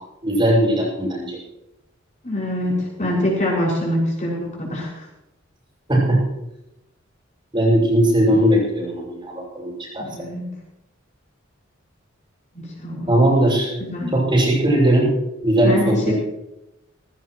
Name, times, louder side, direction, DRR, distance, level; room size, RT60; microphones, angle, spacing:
voice 1, 0.2-1.4 5.9-6.2 7.5-10.1 13.1-13.7 14.1-15.1 15.4-16.2, right 1 dB, 25° right, -3 dB, 6.1 m, -18 dB
voice 2, 2.2-5.1 10.0-10.5 12.5-13.2 13.9-14.2 15.6-16.2, left 1 dB, 40° left, -4 dB, 6.1 m, -24 dB
17.5 x 17.0 x 3.2 m, 0.89 s
head